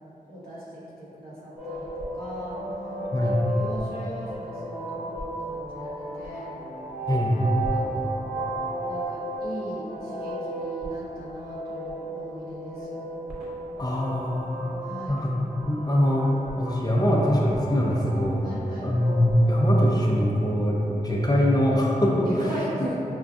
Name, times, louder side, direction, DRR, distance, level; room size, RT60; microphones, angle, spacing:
voice 1, 0.2-2.6 3.2-6.6 7.7-8.5 8.8-13.1 14.8-15.3 18.4-19.0 22.2-23.0, right 1 dB, 85° right, -9 dB, 1.0 m, -38 dB
sound 1, 1.5-19.8, right 1 dB, ahead, 1.0 m, -34 dB
voice 2, 7.1-7.5 13.8-14.7 15.1-16.3 16.6-18.5 18.8-22.3, equal, 25° left, -4 dB, 0.5 m, -23 dB
5.1 x 2.3 x 2.5 m, 3.0 s
wide cardioid pair, 90°, 15 cm